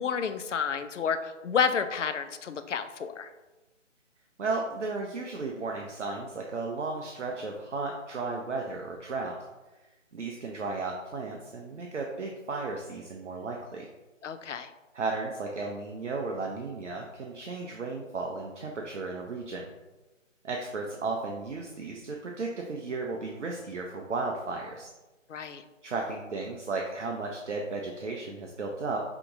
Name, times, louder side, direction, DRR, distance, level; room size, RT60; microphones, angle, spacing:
voice 1, 0.0-3.3 14.2-14.7 25.3-25.6, left 6 dB, 70° left, 9 dB, 0.5 m, -30 dB
voice 2, 4.4-9.4 10.1-13.9 14.9-19.7 20.4-24.9 25.8-29.0, right 3 dB, 65° right, 1 dB, 0.6 m, -34 dB
5.7 x 2.9 x 2.6 m, 1.1 s
figure-of-eight pair, 150°, 39 cm